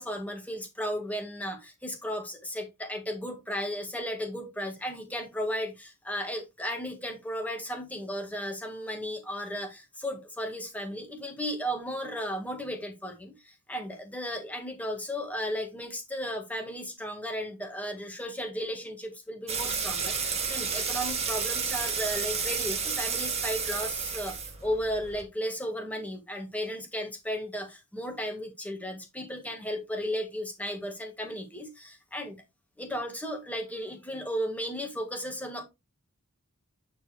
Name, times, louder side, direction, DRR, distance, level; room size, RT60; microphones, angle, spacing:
voice 1, 0.0-32.4 32.8-35.6, equal, 5° left, 1.7 m, -35 dB
sound 1, 19.5-25.2, right 5 dB, 30° right, 1.8 m, -31 dB
8.8 x 4.5 x 3.3 m
head